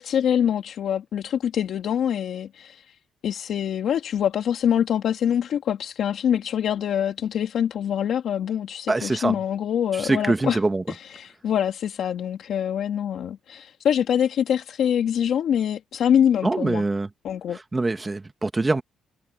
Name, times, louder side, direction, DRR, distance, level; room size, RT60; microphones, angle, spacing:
voice 1, 0.0-3.0 3.2-10.6 10.9-16.8 17.2-17.6, left 9 dB, 70° left, 1.7 m, -24 dB
voice 2, 8.9-9.4 10.0-10.8 16.4-17.1 17.7-18.8, right 2 dB, 20° right, 1.7 m, -23 dB
cardioid pair, 90°, 0 cm